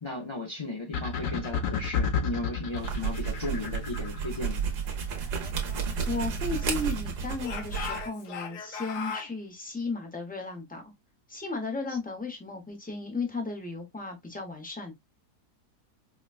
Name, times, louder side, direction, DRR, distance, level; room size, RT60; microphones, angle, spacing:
voice 1, 0.0-4.6, left 2 dB, 50° left, 0.3 m, -35 dB
sound 1, 0.9-4.4, left 7 dB, 65° left, 0.9 m, -30 dB
sound 2, 2.7-8.1, right 6 dB, 80° right, 1.5 m, -32 dB
Speech / Shout, 5.4-7.0 7.4-9.3, left 6 dB, 90° left, 1.4 m, -39 dB
voice 2, 6.1-10.8 11.3-14.9, left 3 dB, 10° left, 0.6 m, -35 dB
4.8 x 2.2 x 2.4 m
omnidirectional pair, 1.7 m